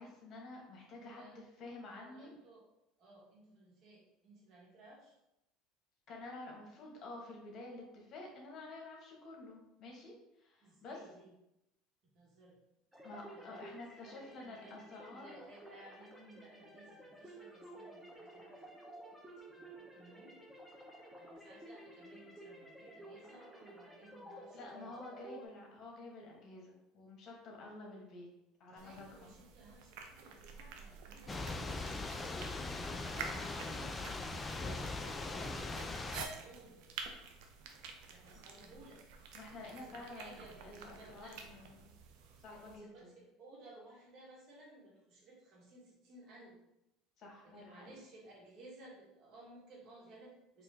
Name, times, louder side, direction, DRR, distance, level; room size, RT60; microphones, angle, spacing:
voice 1, 0.0-2.3 6.1-11.0 13.0-15.4 24.5-28.3 28.6-29.4 39.3-40.4 40.6-41.9 42.4-43.1 47.2-47.9, left 2 dB, 50° left, 0 dB, 1.3 m, -50 dB
voice 2, 1.0-1.4 1.8-2.6 3.0-5.2 10.6-11.3 12.1-12.6 13.3-18.6 19.4-20.4 21.2-24.9 28.7-32.7 33.2-37.3 38.1-39.1 39.5-41.4 42.5-46.6 47.4-50.6, right 2 dB, 55° right, -3 dB, 1.5 m, -58 dB
sound 1, 12.9-25.5, right 1 dB, 5° right, 0.9 m, -53 dB
sound 2, 28.8-42.8, right 5 dB, 75° right, 0.6 m, -50 dB
Thunder / Rain, 31.3-36.3, left 3 dB, 20° left, 0.4 m, -40 dB
4.2 x 2.7 x 3.4 m, 0.88 s
supercardioid pair, 95°, 0 cm